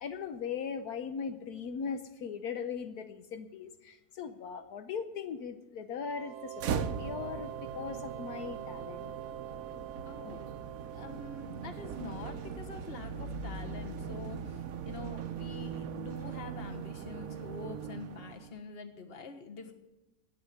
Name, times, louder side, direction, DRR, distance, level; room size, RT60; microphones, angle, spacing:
voice 1, 0.0-9.1, left 6 dB, 80° left, 8 dB, 1.3 m, -39 dB
sound 1, 6.0-12.7, right 9 dB, 85° right, 1.3 m, -45 dB
sound 2, 6.6-18.6, right 7 dB, 70° right, 1.2 m, -40 dB
voice 2, 10.0-10.4 10.9-19.7, left 4 dB, 40° left, 5 dB, 1.5 m, -45 dB
12.0 x 8.9 x 9.1 m, 1.0 s
omnidirectional pair, 1.6 m